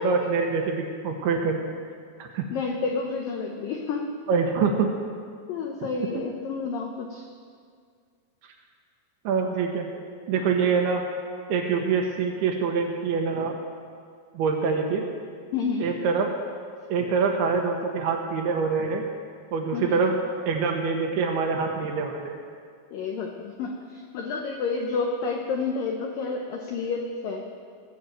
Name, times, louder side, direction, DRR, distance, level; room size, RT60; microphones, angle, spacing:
voice 1, 0.0-1.7 2.2-2.5 4.3-4.9 9.2-9.9 10.3-11.0 11.5-13.5 14.3-15.0 15.8-16.3 16.9-19.0 19.5-20.1 20.5-22.4, right 5 dB, 75° right, 2 dB, 2.6 m, -25 dB
voice 2, 2.5-4.1 5.5-7.3 15.5-15.9 19.7-20.0 22.9-27.4, left 4 dB, 85° left, 2 dB, 1.9 m, -30 dB
18.0 x 7.2 x 7.5 m, 2.1 s
omnidirectional pair, 5.2 m